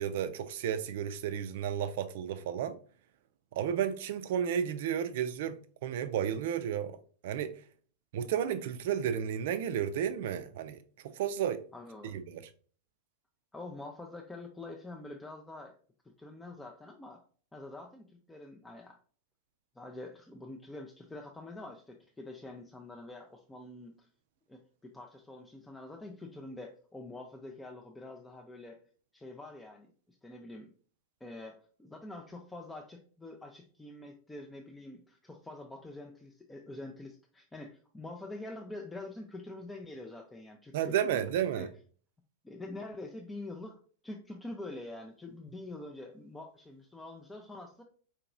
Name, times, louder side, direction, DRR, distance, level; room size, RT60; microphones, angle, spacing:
voice 1, 0.0-2.7 3.5-7.0 7.2-7.5 8.1-10.8 11.0-11.6 12.0-12.4 40.7-41.7, right 9 dB, 55° right, 0.4 m, -32 dB
voice 2, 11.7-12.2 13.5-15.8 16.0-17.2 17.5-19.0 19.8-24.1 24.5-28.8 29.1-30.7 31.2-41.3 41.5-41.7 42.4-47.8, left 2 dB, 10° left, 0.4 m, -46 dB
4.5 x 2.8 x 2.5 m
figure-of-eight pair, 90°, 0 cm